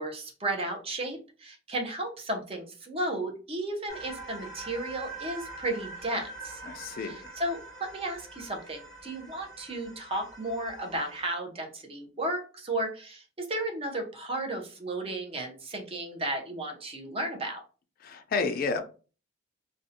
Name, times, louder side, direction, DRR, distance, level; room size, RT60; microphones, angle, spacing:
voice 1, 0.0-6.6 7.0-17.6, right 1 dB, 30° right, 0.6 m, -34 dB
sound 1, 3.9-11.3, right 3 dB, ahead, 1.2 m, -44 dB
voice 2, 6.6-7.3 18.0-18.8, left 4 dB, 50° left, 0.4 m, -31 dB
2.5 x 2.1 x 2.7 m
head